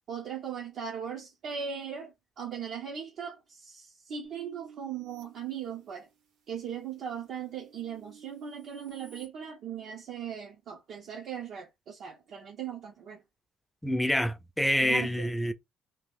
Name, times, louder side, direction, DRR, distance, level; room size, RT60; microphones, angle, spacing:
voice 1, 0.1-6.1 6.5-13.2 14.8-15.3, right 8 dB, 60° right, 0.7 m, -39 dB
sound 1, 4.2-6.2 6.7-9.3, right 7 dB, 85° right, 1.7 m, -53 dB
voice 2, 13.8-15.5, equal, 5° left, 0.4 m, -27 dB
2.9 x 2.5 x 3.5 m
cardioid pair, 120°, 0 cm